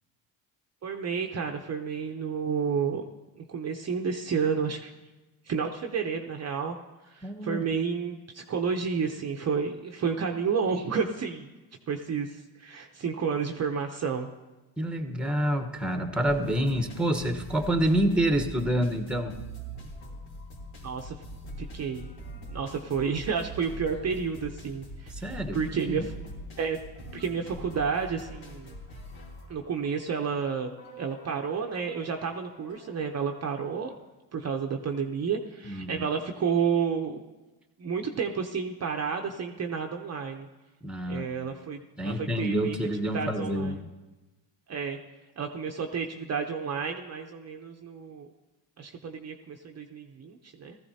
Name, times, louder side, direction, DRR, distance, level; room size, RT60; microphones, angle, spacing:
voice 1, 0.8-3.0 3.4-4.9 5.4-6.8 7.0-11.5 11.9-14.3 20.8-21.2 21.6-22.1 22.5-26.1 26.6-26.8 27.1-28.8 29.5-30.7 31.0-33.9 34.3-37.2 37.8-40.5 41.1-42.8 43.1-43.9 44.7-45.0 45.4-48.3 48.8-50.8, right 6 dB, 30° right, 3 dB, 0.8 m, -31 dB
voice 2, 7.2-7.6 14.8-19.4 25.2-25.6 25.9-26.1 35.6-36.1 40.8-41.3 42.0-43.8, right 1 dB, ahead, 6 dB, 1.1 m, -27 dB
sound 1, 16.3-33.9, right 1 dB, 70° left, 3.2 m, -44 dB
16.5 x 14.0 x 2.8 m, 1.1 s
supercardioid pair, 80°, 48 cm